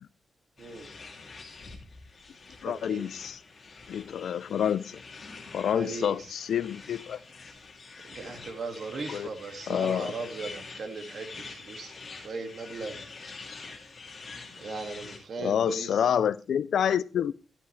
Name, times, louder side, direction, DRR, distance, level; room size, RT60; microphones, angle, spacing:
sound 1, 0.6-15.3, left 4 dB, 35° left, 2.7 m, -46 dB
voice 1, 0.6-0.9 2.6-3.0 5.7-6.2 8.1-11.9 12.2-13.0 14.6-16.1, right 3 dB, 50° right, 5 dB, 2.2 m, -38 dB
voice 2, 2.6-3.4 3.9-5.0 5.5-7.2 9.1-9.3 9.7-10.1 15.4-17.3, left 9 dB, 75° left, 18 dB, 0.5 m, -28 dB
13.0 x 11.5 x 3.3 m, 0.33 s
wide cardioid pair, 150°, 0 cm